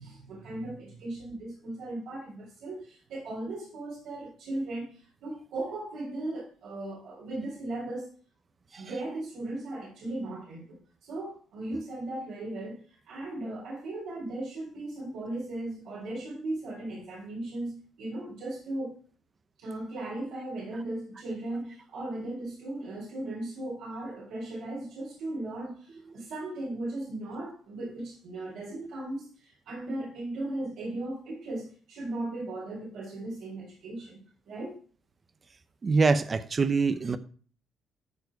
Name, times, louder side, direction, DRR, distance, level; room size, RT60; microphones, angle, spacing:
voice 1, 0.0-8.1 8.8-19.0 19.6-34.8, right 2 dB, 85° right, 4.1 m, -37 dB
voice 2, 35.8-37.2, right 4 dB, 35° right, 0.9 m, -25 dB
13.5 x 4.7 x 4.8 m
cardioid pair, 90°, 0 cm